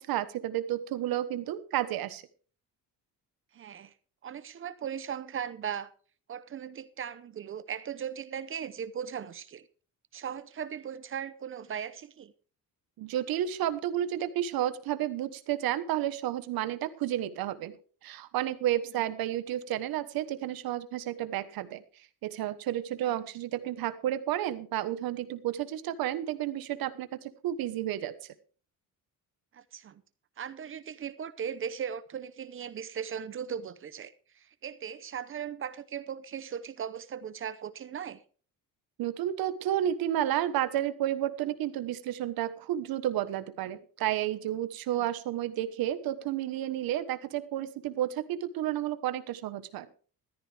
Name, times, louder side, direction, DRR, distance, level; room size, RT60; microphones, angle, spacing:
voice 1, 0.0-2.2 13.0-17.7 18.0-21.8 22.2-28.1 39.0-49.9, right 12 dB, 80° right, 1.3 m, -31 dB
voice 2, 3.5-3.9 4.2-5.9 6.3-9.7 10.1-12.3 23.0-23.2 29.5-30.0 30.4-38.2 44.9-45.1, right 8 dB, 35° right, 0.8 m, -38 dB
14.0 x 13.5 x 3.4 m
cardioid pair, 170°, 35 cm